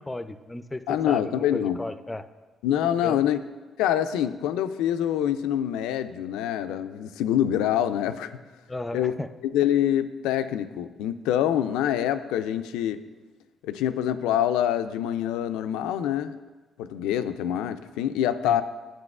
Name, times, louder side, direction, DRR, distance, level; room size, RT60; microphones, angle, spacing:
voice 1, 0.0-2.2 3.0-3.2 8.7-9.3 18.4-18.6, left 2 dB, 15° left, 11 dB, 0.4 m, -34 dB
voice 2, 0.9-1.8 2.6-3.4 3.8-8.4 8.9-9.2 9.5-13.0 13.6-16.4 16.8-18.6, left 10 dB, 90° left, 11 dB, 0.3 m, -25 dB
9.7 x 7.4 x 2.4 m, 1.3 s
supercardioid pair, 75°, 0 cm